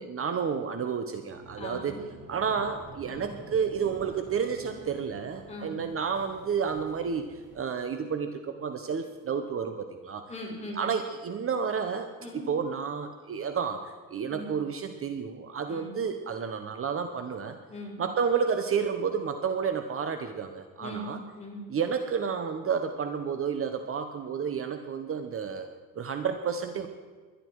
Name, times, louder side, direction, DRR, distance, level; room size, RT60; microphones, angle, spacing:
voice 1, 0.0-2.0 2.3-10.3 10.7-12.1 12.3-17.6 18.0-21.2 21.7-25.7 26.0-26.9, right 6 dB, 40° right, 7 dB, 1.0 m, -31 dB
sound 1, 1.3-7.6, right 2 dB, 85° right, 5.4 m, -49 dB
voice 2, 1.6-2.0 3.1-3.3 5.5-5.7 10.3-10.8 12.2-12.5 14.3-14.5 15.7-15.9 17.7-18.0 20.8-21.6, equal, 20° left, -3 dB, 5.0 m, -40 dB
21.5 x 11.5 x 4.7 m, 1.4 s
cardioid pair, 130°, 35 cm